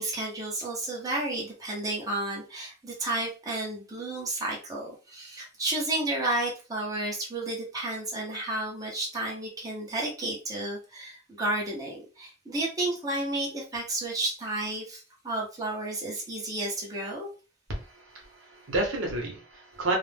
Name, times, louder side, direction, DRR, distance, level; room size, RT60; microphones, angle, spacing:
voice 1, 0.0-17.3, right 2 dB, 20° right, -4 dB, 0.8 m, -32 dB
voice 2, 17.7-19.9, right 2 dB, 75° right, 0 dB, 0.9 m, -31 dB
2.4 x 2.0 x 3.3 m, 0.34 s
head